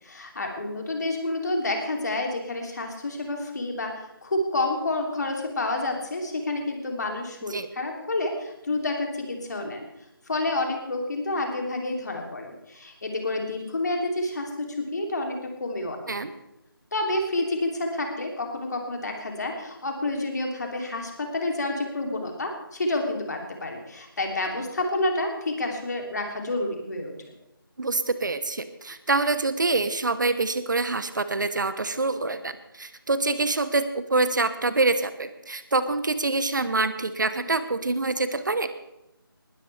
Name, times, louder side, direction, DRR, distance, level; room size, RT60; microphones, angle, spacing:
voice 1, 0.0-9.9 10.3-16.0 16.9-27.1, left 2 dB, 50° left, 2 dB, 3.1 m, -29 dB
voice 2, 27.8-38.7, right 3 dB, 55° right, 12 dB, 1.1 m, -26 dB
20.0 x 13.0 x 3.4 m, 0.90 s
figure-of-eight pair, 160°, 12 cm